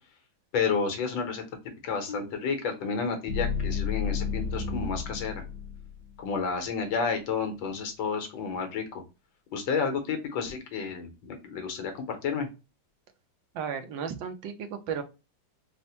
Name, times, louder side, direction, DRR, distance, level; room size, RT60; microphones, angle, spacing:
voice 1, 0.5-1.4 1.8-5.4 6.2-9.0 9.5-12.5, left 5 dB, 90° left, 6 dB, 1.7 m, -31 dB
sound 1, 2.1-6.2, left 5 dB, 70° left, 1.1 m, -33 dB
voice 2, 13.5-15.0, right 7 dB, 85° right, 7 dB, 1.4 m, -34 dB
4.2 x 2.1 x 2.7 m, 0.28 s
omnidirectional pair, 2.0 m